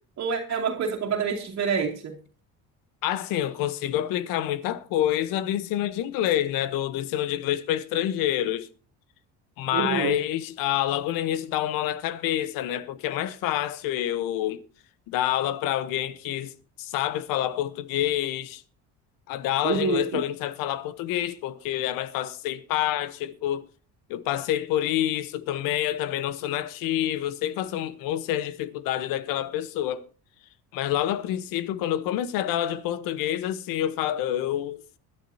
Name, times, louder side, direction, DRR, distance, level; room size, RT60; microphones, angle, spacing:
voice 1, 0.2-2.2 9.7-10.1 19.6-20.2, right 6 dB, 50° right, 2.4 m, -27 dB
voice 2, 3.0-8.7 9.6-14.6 15.1-16.5 16.8-18.6 19.3-23.6 24.1-30.0 30.7-34.8, left 12 dB, 80° left, 1.1 m, -27 dB
21.5 x 11.0 x 2.8 m
cardioid pair, 100°, 33 cm